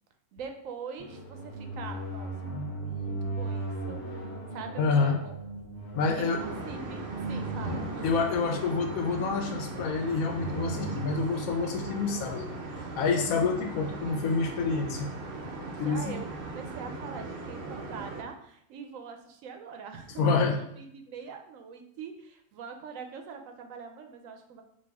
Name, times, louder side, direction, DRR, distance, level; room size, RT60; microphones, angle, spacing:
voice 1, 0.3-2.6 2.8-5.3 6.1-8.1 15.7-24.6, right 6 dB, 75° right, 5 dB, 1.0 m, -43 dB
sound 1, 1.0-12.6, right 2 dB, 50° left, 1.3 m, -38 dB
voice 2, 4.8-5.2 5.9-6.4 8.0-12.5 13.0-15.1 15.8-16.1 20.2-20.6, left 4 dB, 90° left, 4 dB, 1.1 m, -27 dB
sound 2, 6.4-18.2, right 3 dB, 60° right, 0.6 m, -39 dB
4.2 x 2.6 x 3.4 m, 0.70 s
omnidirectional pair, 1.4 m